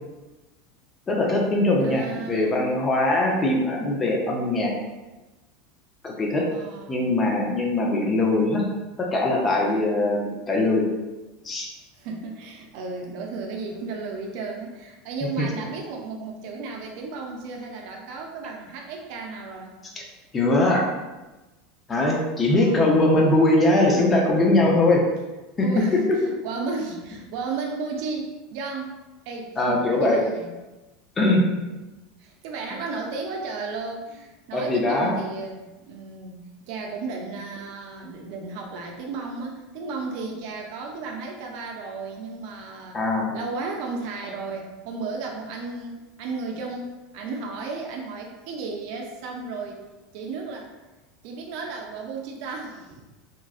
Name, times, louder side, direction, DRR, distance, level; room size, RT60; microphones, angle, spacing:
voice 1, 1.1-4.7 6.0-6.5 6.9-8.6 9.0-10.2 10.5-10.9 11.4-11.7 15.4-15.5 20.3-20.9 21.9-25.0 25.6-25.8 29.6-30.2 31.2-31.4 34.5-35.1 42.9-43.3, left 2 dB, 25° left, -1 dB, 0.6 m, -21 dB
voice 2, 1.8-2.7 6.5-7.2 11.9-19.8 22.5-23.0 25.6-26.0 26.3-29.0 29.3-30.6 31.5-31.8 32.2-43.0 43.3-49.8 50.1-50.7 51.2-53.1, right 4 dB, 65° right, 1 dB, 0.4 m, -34 dB
3.0 x 2.3 x 2.4 m, 1.1 s
hypercardioid pair, 95°, 0 cm